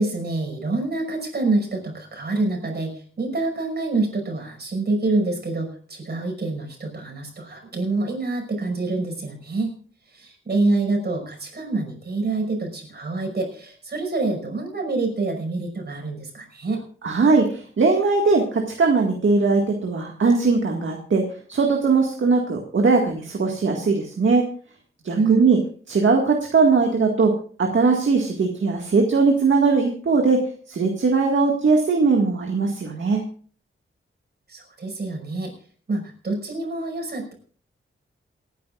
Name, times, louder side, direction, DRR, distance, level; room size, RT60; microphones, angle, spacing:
voice 1, 0.0-9.7 10.1-16.8 25.2-25.4 34.5-35.5 35.9-37.3, right 2 dB, 50° right, 2 dB, 5.6 m, -26 dB
voice 2, 17.0-17.4 17.8-21.2 21.5-24.4 25.1-25.6 25.9-27.3 27.6-30.4 30.7-33.2, right 4 dB, 65° right, 1 dB, 1.9 m, -19 dB
28.0 x 10.0 x 2.5 m, 0.43 s
wide cardioid pair, 140°, 21 cm